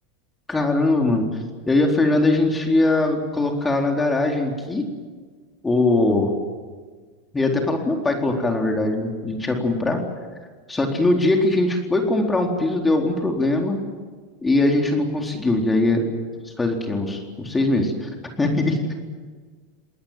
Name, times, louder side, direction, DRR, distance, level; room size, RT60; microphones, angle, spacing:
voice 1, 0.5-1.2 1.7-4.9 5.6-6.3 7.3-10.0 10.7-13.8 14.4-16.1 16.6-18.1 18.4-18.8, left 2 dB, 15° left, 2 dB, 4.1 m, -21 dB
29.5 x 20.5 x 7.6 m, 1.5 s
hypercardioid pair, 90°, 0 cm